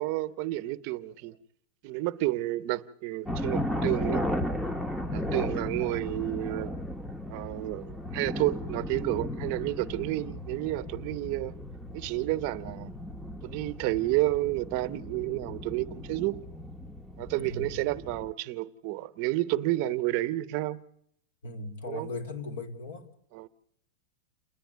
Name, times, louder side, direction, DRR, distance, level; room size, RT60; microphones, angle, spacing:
voice 1, 0.0-1.4 1.8-4.3 5.1-6.8 7.3-11.5 11.9-13.0 13.4-16.4 17.2-20.8 21.9-22.1 23.3-23.5, right 17 dB, 50° right, 0.8 m, -30 dB
sound 1, 3.2-18.3, left 1 dB, 5° left, 0.8 m, -35 dB
voice 2, 5.1-5.5 17.4-17.7 21.4-23.1, left 2 dB, 90° left, 2.8 m, -38 dB
28.5 x 9.9 x 9.6 m
supercardioid pair, 140°, 0 cm